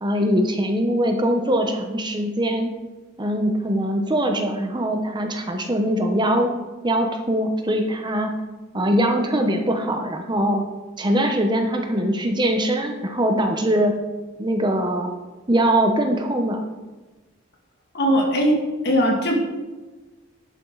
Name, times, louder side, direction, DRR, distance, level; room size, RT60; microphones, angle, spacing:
voice 1, 0.0-2.7 3.2-6.5 6.8-8.3 8.7-10.6 11.0-13.9 14.4-15.1 15.5-16.6, right 1 dB, 20° right, 4 dB, 0.9 m, -22 dB
voice 2, 17.9-18.6 18.8-19.3, equal, 55° left, 0 dB, 2.3 m, -19 dB
11.0 x 8.9 x 4.0 m, 1.2 s
head